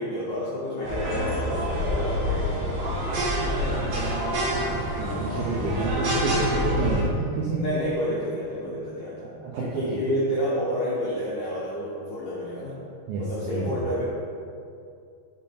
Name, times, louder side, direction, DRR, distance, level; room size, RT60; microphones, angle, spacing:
voice 1, 0.0-2.6 7.6-9.3 9.6-12.8 13.2-14.0, equal, 80° left, -8 dB, 1.9 m, -29 dB
sound 1, 0.8-5.9, equal, 60° left, 1.7 m, -41 dB
sound 2, 0.8-7.0, equal, 70° right, 1.6 m, -27 dB
voice 2, 3.1-4.6 5.0-7.7 9.2-10.0 13.1-13.8, right 3 dB, 90° right, -5 dB, 2.0 m, -30 dB
6.3 x 3.7 x 4.2 m, 2.4 s
omnidirectional pair, 4.9 m